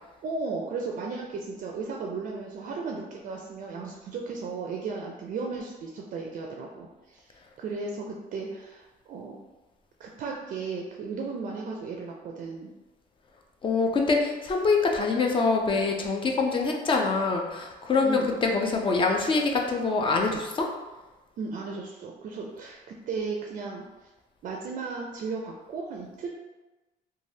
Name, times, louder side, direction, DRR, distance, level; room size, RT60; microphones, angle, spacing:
voice 1, 0.2-7.2 7.6-9.4 10.0-12.7 18.0-18.3 21.4-22.8 23.1-23.8 24.4-26.3, right 4 dB, 50° right, 0 dB, 0.4 m, -35 dB
voice 2, 13.6-20.7, left 4 dB, 30° left, 2 dB, 0.4 m, -25 dB
3.2 x 2.3 x 2.7 m, 1.1 s
cardioid pair, 110°, 17 cm